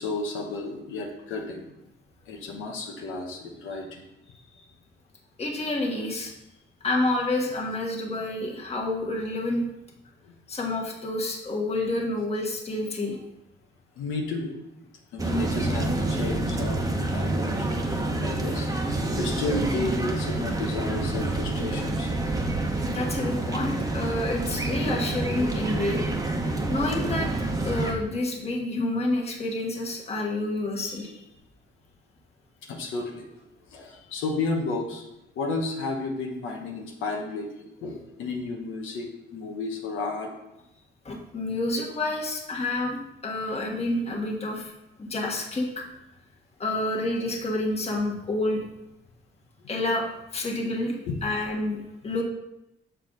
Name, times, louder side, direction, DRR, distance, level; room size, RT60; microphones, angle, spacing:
voice 1, 0.0-1.7 2.3-4.0 10.3-10.4 14.0-14.5 15.1-18.7 19.2-22.1 32.6-33.4 33.7-35.0 35.3-40.3 51.1-51.2, left 3 dB, 90° left, 0 dB, 1.1 m, -32 dB
voice 2, 5.4-6.3 6.8-9.6 10.5-13.2 22.8-26.0 26.7-27.3 27.6-31.2 41.0-44.7 45.0-45.8 46.6-48.6 49.7-50.1 50.3-52.2, left 2 dB, 30° left, -1 dB, 1.5 m, -28 dB
sound 1, 15.2-27.9, right 2 dB, 15° right, 1.0 m, -28 dB
6.7 x 4.7 x 3.9 m, 0.87 s
cardioid pair, 90°, 20 cm